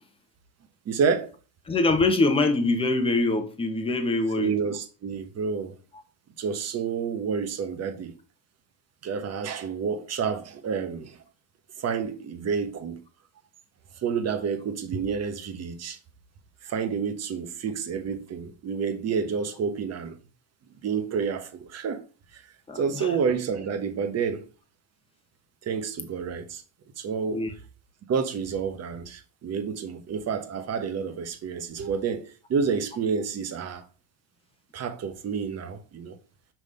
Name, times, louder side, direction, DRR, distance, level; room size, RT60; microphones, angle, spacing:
voice 1, 0.8-1.3 4.4-5.8 6.4-8.1 9.0-11.2 11.8-13.0 14.0-16.0 16.6-20.2 20.8-22.0 22.3-22.4 22.7-24.5 25.6-26.6 27.0-27.4 28.1-33.8 34.7-36.2, right 6 dB, 30° right, 1.2 m, -29 dB
voice 2, 1.7-4.5 22.7-23.1 27.3-27.5, left 2 dB, 10° left, 1.1 m, -24 dB
6.1 x 3.5 x 5.6 m
supercardioid pair, 110°, 47 cm